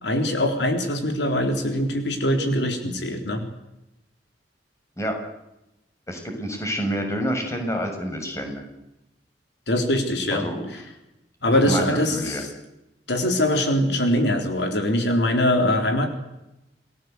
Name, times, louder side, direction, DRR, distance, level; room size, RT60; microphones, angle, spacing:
voice 1, 0.0-3.5 9.7-10.5 11.4-12.5 13.1-16.1, left 1 dB, 75° left, 5 dB, 4.0 m, -22 dB
voice 2, 6.1-8.7 10.3-10.7 11.5-12.4, equal, 15° left, 3 dB, 6.5 m, -28 dB
28.5 x 19.5 x 8.2 m, 0.91 s
head